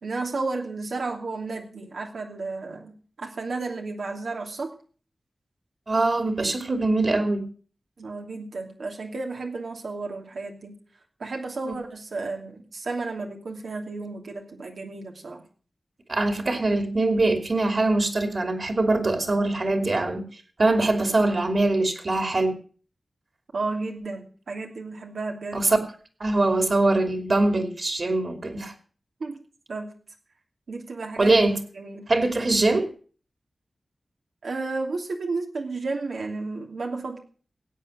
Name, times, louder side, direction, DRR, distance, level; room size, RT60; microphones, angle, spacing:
voice 1, 0.0-4.7 8.0-10.8 11.2-15.4 23.5-25.6 29.2-29.4 29.7-29.9 30.7-31.3 31.7-32.1 34.4-37.2, right 3 dB, 85° right, 1 dB, 2.8 m, -32 dB
voice 2, 5.9-7.5 11.6-11.7 16.1-20.2 20.6-22.6 25.5-25.8 26.2-28.7 31.2-31.6 32.1-32.9, right 2 dB, 50° right, 6 dB, 2.8 m, -22 dB
16.5 x 8.8 x 6.5 m, 0.42 s
wide cardioid pair, 80°, 0 cm